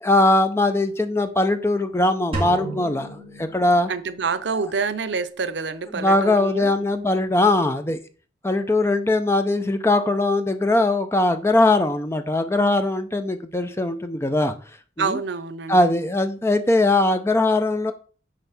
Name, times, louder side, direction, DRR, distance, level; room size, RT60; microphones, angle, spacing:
voice 1, 0.0-3.9 5.9-8.0 8.4-14.6 15.0-15.2 15.7-17.9, left 2 dB, 15° left, 9 dB, 0.5 m, -20 dB
sound 1, 2.3-4.4, right 1 dB, 30° right, 2.0 m, -33 dB
voice 2, 3.9-6.7 15.0-15.9, right 5 dB, 75° right, 11 dB, 0.7 m, -27 dB
9.1 x 3.3 x 5.9 m, 0.40 s
head